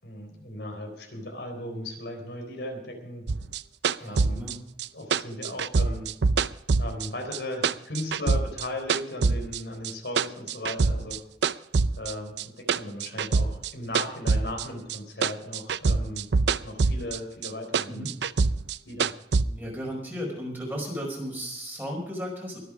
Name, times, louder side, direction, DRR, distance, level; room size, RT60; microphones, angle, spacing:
voice 1, 0.0-3.2 4.0-4.5 4.9-6.1 6.8-11.2 12.0-16.3 16.6-18.1 18.9-19.1 19.4-19.6, left 1 dB, 75° left, 2 dB, 3.9 m, -37 dB
sound 1, 3.3-7.4 7.6-9.6 9.8-11.2 11.4-15.0 15.2-17.2 17.4-19.4, right 4 dB, 75° right, 0.5 m, -24 dB
voice 2, 4.0-4.6 17.9-18.1 19.6-22.6, equal, 10° right, -1 dB, 5.0 m, -35 dB
23.0 x 8.5 x 5.1 m, 0.85 s
head